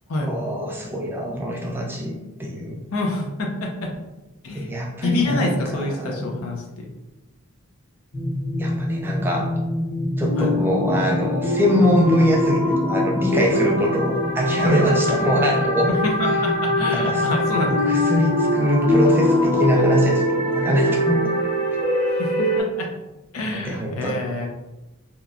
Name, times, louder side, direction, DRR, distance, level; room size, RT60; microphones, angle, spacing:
voice 1, 0.2-2.8 4.5-6.4 8.6-9.5 10.2-15.9 16.9-17.3 17.8-21.3 23.5-24.2, equal, 10° right, -1 dB, 0.3 m, -23 dB
voice 2, 2.9-3.9 4.4-4.7 5.0-6.9 10.4-10.5 15.1-15.2 15.9-17.7 22.0-22.9 23.3-24.5, left 2 dB, 85° left, 1 dB, 0.6 m, -27 dB
sound 1, 8.1-22.6, left 1 dB, 40° left, 0.8 m, -22 dB
2.9 x 2.2 x 2.4 m, 1.0 s
head